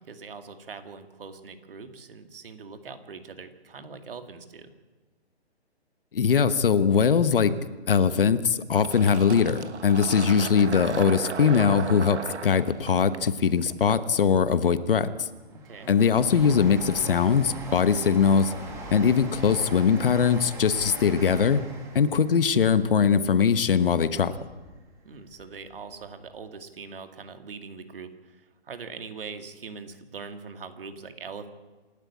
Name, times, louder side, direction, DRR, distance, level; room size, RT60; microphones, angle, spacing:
voice 1, 0.0-4.7 15.5-15.9 25.0-31.5, right 5 dB, 55° right, 7 dB, 2.3 m, -42 dB
voice 2, 6.1-7.6 7.9-15.3 15.9-18.5 18.9-21.6 21.9-24.3, left 6 dB, 55° left, 13 dB, 1.2 m, -21 dB
Fill (with liquid), 8.8-14.2, right 6 dB, 90° right, 1.6 m, -36 dB
Train, 15.1-24.8 25.2-26.1 26.3-26.4, right 2 dB, 10° right, 2.2 m, -41 dB
27.0 x 12.5 x 8.4 m, 1.3 s
hypercardioid pair, 170°, 33 cm